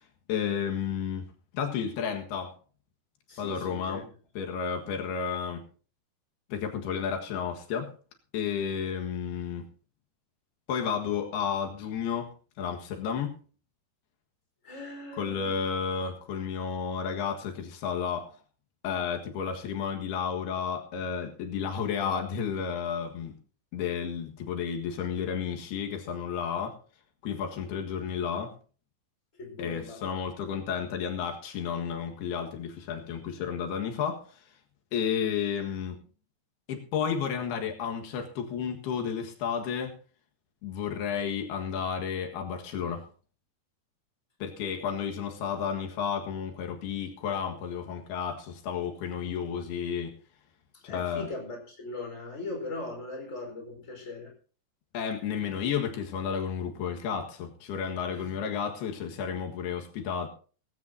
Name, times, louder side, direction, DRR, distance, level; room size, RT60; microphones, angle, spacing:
voice 1, 0.3-1.3 1.5-2.6 3.4-4.1 4.4-5.6 6.5-7.9 8.3-9.6 10.7-12.3 12.6-13.4 15.2-18.3 18.8-23.3 23.7-26.8 27.2-28.5 29.6-34.3 34.9-36.0 36.7-39.9 40.6-43.0 44.4-50.1 50.8-51.3 54.9-60.3, left 7 dB, 85° left, 3 dB, 3.7 m, -32 dB
voice 2, 3.3-4.0 14.6-15.5 29.4-30.0 50.7-54.3, left 2 dB, 20° left, 1 dB, 4.7 m, -39 dB
17.5 x 16.5 x 2.8 m, 0.39 s
omnidirectional pair, 4.5 m